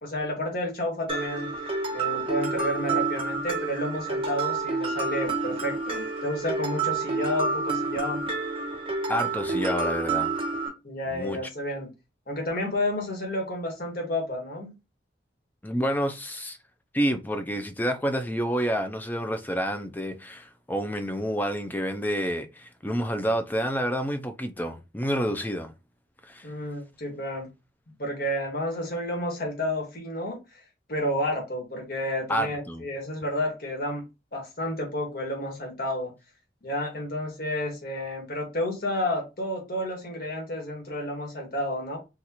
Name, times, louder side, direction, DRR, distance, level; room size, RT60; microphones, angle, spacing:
voice 1, 0.0-8.2 10.8-11.9 12.3-14.7 26.4-27.5 27.9-30.6 30.9-34.0 34.3-36.1 36.6-42.0, left 1 dB, 50° left, 1.4 m, -31 dB
Mallet percussion, 1.1-10.7, right 3 dB, 30° right, 1.1 m, -29 dB
voice 2, 9.1-10.3 11.1-11.4 15.6-16.6 16.9-25.7 26.2-26.5 32.3-32.9, equal, 10° left, 0.4 m, -29 dB
4.0 x 2.4 x 2.8 m
head